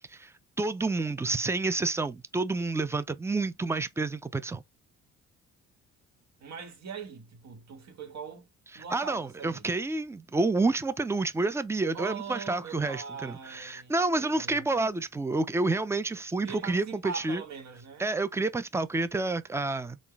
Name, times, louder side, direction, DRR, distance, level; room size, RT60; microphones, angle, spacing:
voice 1, 0.6-4.6 8.7-17.4 18.0-20.0, right 3 dB, 10° right, 0.4 m, -29 dB
voice 2, 6.4-8.5 8.7-9.7 11.9-13.9 14.2-14.7 16.4-18.1, right 6 dB, 65° right, 1.5 m, -41 dB
3.8 x 2.5 x 3.4 m
cardioid pair, 90°, 30 cm